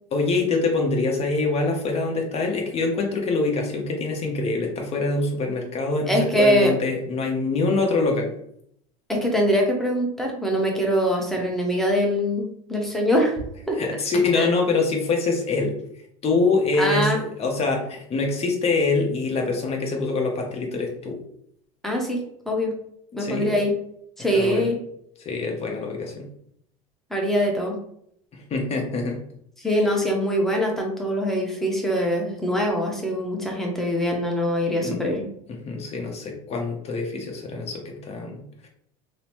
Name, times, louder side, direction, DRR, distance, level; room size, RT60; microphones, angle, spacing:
voice 1, 0.1-8.3 13.8-15.8 16.2-21.2 23.1-23.6 24.3-24.7 25.2-26.3 28.3-29.2 34.8-35.0 35.5-38.7, left 3 dB, 35° left, 1 dB, 0.8 m, -25 dB
voice 2, 6.1-6.7 9.1-13.8 14.3-14.5 16.8-17.2 21.8-22.7 23.2-23.7 24.2-24.8 27.1-27.8 29.6-35.2, equal, ahead, 0 dB, 0.7 m, -23 dB
3.0 x 2.0 x 2.9 m, 0.70 s
supercardioid pair, 100°, 18 cm